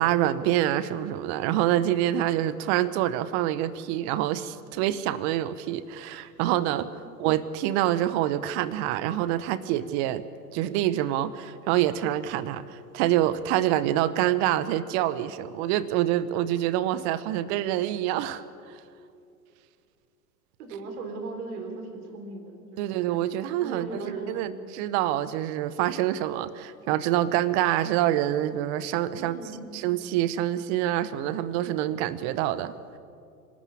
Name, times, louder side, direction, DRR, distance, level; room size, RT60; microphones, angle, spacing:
voice 1, 0.0-6.9 7.2-10.2 10.5-18.8 22.8-29.4 29.7-32.7, right 13 dB, 45° right, 16 dB, 0.9 m, -26 dB
voice 2, 20.6-23.1 23.6-24.4 29.2-29.7, right 3 dB, 65° right, 4 dB, 4.2 m, -38 dB
26.0 x 12.5 x 8.6 m, 2.5 s
figure-of-eight pair, 95°, 48 cm